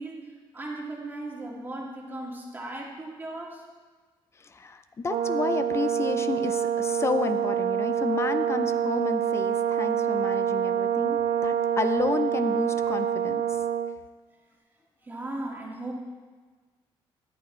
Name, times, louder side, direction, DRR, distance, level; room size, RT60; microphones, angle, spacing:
voice 1, 0.0-3.6 15.0-15.9, right 2 dB, 20° right, -2 dB, 2.0 m, -37 dB
voice 2, 4.4-13.4, left 4 dB, 30° left, 10 dB, 0.5 m, -31 dB
Brass instrument, 5.1-14.0, right 9 dB, 85° right, 0.5 m, -26 dB
13.5 x 11.0 x 3.2 m, 1.4 s
cardioid pair, 140°, 10 cm